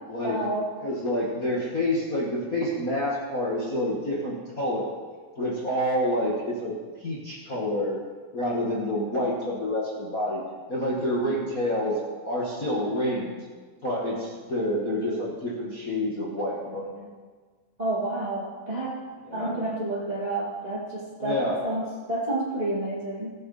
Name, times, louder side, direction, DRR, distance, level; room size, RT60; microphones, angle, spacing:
voice 1, 0.2-0.7 17.8-19.0 19.3-23.3, right 2 dB, 85° right, -5 dB, 0.3 m, -30 dB
voice 2, 0.8-4.9 5.4-8.0 8.3-10.4 10.7-12.0 12.2-13.4 13.8-17.1 19.2-19.6 21.2-21.6, left 1 dB, 45° left, -6 dB, 1.0 m, -28 dB
17.5 x 7.1 x 4.9 m, 1.4 s
omnidirectional pair, 4.6 m